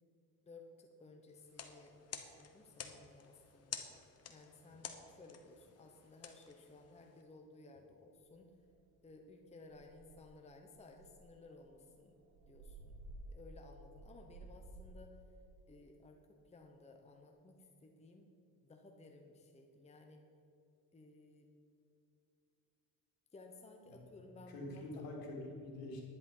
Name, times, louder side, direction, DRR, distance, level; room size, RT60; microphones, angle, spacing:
voice 1, 0.4-3.9 4.3-8.5 9.0-12.1 12.4-13.0 13.3-15.2 15.7-18.3 18.6-20.2 20.9-21.5 23.3-25.0, left 3 dB, 20° left, 3 dB, 0.9 m, -58 dB
sound 1, 1.4-7.2, left 7 dB, 40° left, 1.1 m, -51 dB
sound 2, 8.2-8.3 8.7-9.0 9.3-9.4 9.7-10.4 10.9-15.1, right 2 dB, 45° right, 1.3 m, -54 dB
voice 2, 24.5-26.0, left 1 dB, 70° left, -2 dB, 3.5 m, -46 dB
10.5 x 10.5 x 5.5 m, 2.6 s
cardioid pair, 130°, 37 cm